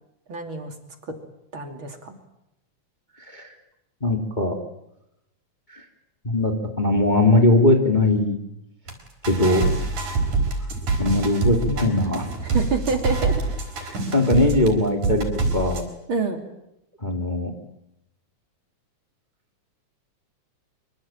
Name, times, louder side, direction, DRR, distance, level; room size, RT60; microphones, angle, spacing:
voice 1, 0.3-0.7 1.0-1.1 1.5-2.2 12.4-13.4 16.1-16.4, right 4 dB, 45° right, 5 dB, 3.4 m, -27 dB
voice 2, 3.2-3.5 4.0-4.5 5.7-5.8 6.2-8.4 9.3-9.6 11.0-12.2 14.1-15.8 17.0-17.5, left 2 dB, 15° left, 3 dB, 2.6 m, -20 dB
sound 1, 8.9-9.0 9.2-14.7 15.0-15.8, right 3 dB, 90° right, 6.2 m, -25 dB
26.0 x 24.5 x 8.9 m, 0.84 s
omnidirectional pair, 3.4 m